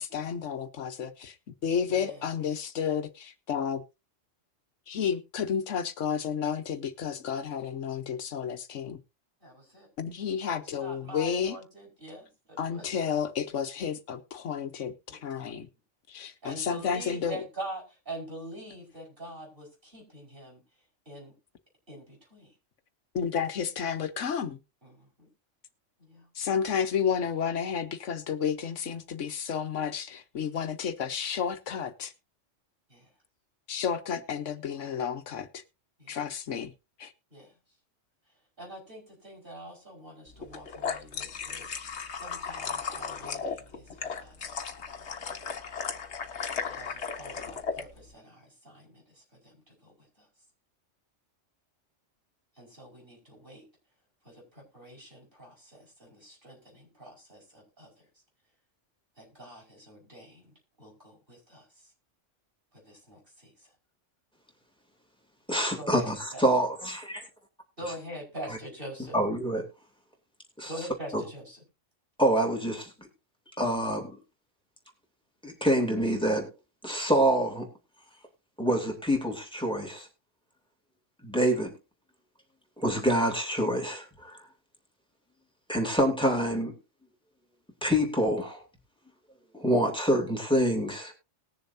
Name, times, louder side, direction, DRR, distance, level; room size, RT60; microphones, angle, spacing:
voice 1, 0.0-3.8 4.9-9.0 10.0-11.6 12.6-15.7 16.1-17.4 23.1-24.6 26.3-32.1 33.7-35.6 36.1-36.7 37.0-37.1, left 7 dB, 75° left, 1.3 m, -31 dB
voice 2, 1.9-2.3 9.4-9.9 10.4-12.9 15.1-15.5 16.4-20.6 21.1-21.3 21.9-22.5 24.8-25.3 26.0-26.3 32.9-33.1 36.0-36.2 37.3-37.5 38.6-41.7 42.2-44.7 46.6-50.3 52.6-53.6 54.2-57.9 59.2-61.7 62.9-63.7 65.8-66.4 67.8-69.2 70.6-71.6, right 1 dB, 45° right, 5.6 m, -45 dB
sound 1, 40.4-47.8, left 6 dB, 60° left, 1.4 m, -36 dB
voice 3, 65.5-67.0 69.1-69.7 70.6-70.7 71.1-71.2 72.2-72.9 73.6-74.2 75.4-76.5 76.8-77.7 78.6-80.1 81.2-81.8 82.8-84.4 85.7-86.7 87.8-88.6 89.5-91.1, right 1 dB, 5° left, 3.0 m, -26 dB
20.5 x 7.0 x 2.7 m
omnidirectional pair, 1.3 m